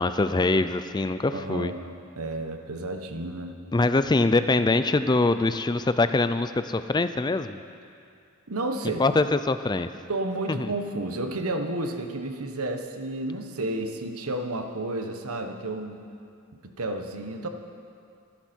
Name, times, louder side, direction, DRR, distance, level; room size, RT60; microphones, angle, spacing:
voice 1, 0.0-1.7 3.7-7.6 9.0-9.9 10.5-10.7, left 2 dB, 20° left, 11 dB, 0.4 m, -23 dB
voice 2, 1.3-1.8 2.2-3.5 8.5-9.0 10.1-16.0 16.6-17.5, right 2 dB, 80° right, 5 dB, 1.3 m, -31 dB
24.5 x 11.5 x 4.5 m, 2.4 s
head